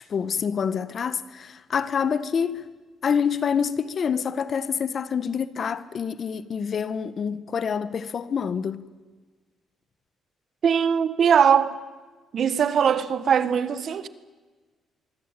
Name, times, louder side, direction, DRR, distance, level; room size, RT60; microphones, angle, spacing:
voice 1, 0.1-2.6 3.0-8.8, left 7 dB, 50° left, 1.5 m, -27 dB
voice 2, 10.6-11.8 12.3-14.1, right 7 dB, 60° right, 1.6 m, -21 dB
24.5 x 24.0 x 9.1 m
cardioid pair, 90°, 0 cm